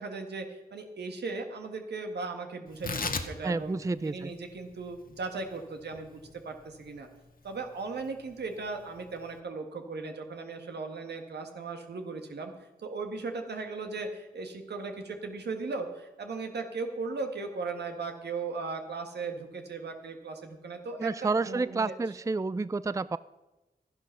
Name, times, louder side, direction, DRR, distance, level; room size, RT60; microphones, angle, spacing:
voice 1, 0.0-3.7 4.0-7.1 7.4-12.5 12.8-22.0, right 4 dB, 85° right, 5 dB, 1.6 m, -37 dB
Tearing, 2.7-9.4, left 4 dB, 55° left, 1.3 m, -40 dB
voice 2, 3.4-4.3 21.0-23.2, right 3 dB, 20° right, 17 dB, 0.4 m, -30 dB
12.5 x 10.5 x 5.7 m, 1.1 s
cardioid pair, 45°, 17 cm